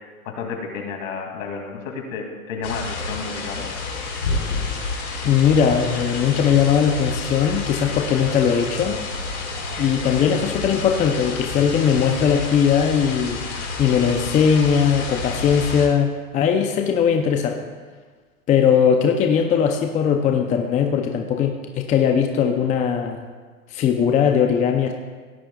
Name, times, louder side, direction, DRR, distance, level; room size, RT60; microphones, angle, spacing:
voice 1, 0.0-3.7, left 5 dB, 60° left, 2 dB, 2.6 m, -32 dB
sound 1, 2.6-15.9, left 3 dB, 80° left, 3.0 m, -29 dB
voice 2, 5.2-9.0 9.8-13.4 13.8-17.6 18.5-23.2 23.7-24.9, left 7 dB, 15° left, 4 dB, 0.6 m, -19 dB
17.0 x 12.0 x 2.4 m, 1.5 s
hypercardioid pair, 125°, 43 cm